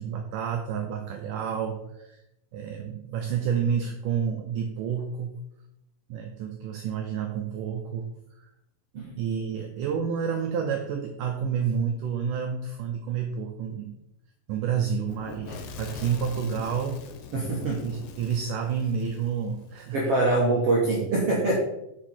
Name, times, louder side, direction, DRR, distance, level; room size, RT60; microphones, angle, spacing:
voice 1, 0.0-2.2 2.5-5.4 6.1-8.5 9.1-13.9 14.5-17.0 17.8-20.1, right 7 dB, 90° right, 4 dB, 1.8 m, -29 dB
Fire / Explosion, 15.1-19.9, left 6 dB, 90° left, 3.0 m, -43 dB
voice 2, 17.3-17.8 19.9-21.6, right 2 dB, 65° right, -3 dB, 1.5 m, -24 dB
7.4 x 6.8 x 4.3 m, 0.86 s
omnidirectional pair, 4.7 m